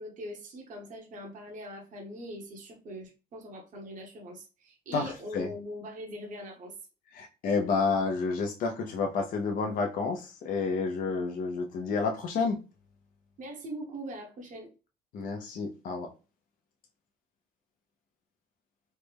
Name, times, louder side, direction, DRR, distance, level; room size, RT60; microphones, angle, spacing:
voice 1, 0.0-6.7 13.4-14.7, equal, 50° right, 1 dB, 1.0 m, -42 dB
voice 2, 4.9-5.5 7.1-12.6 15.1-16.1, left 4 dB, 55° left, 3 dB, 0.6 m, -30 dB
3.2 x 2.0 x 3.3 m, 0.32 s
cardioid pair, 110°, 17 cm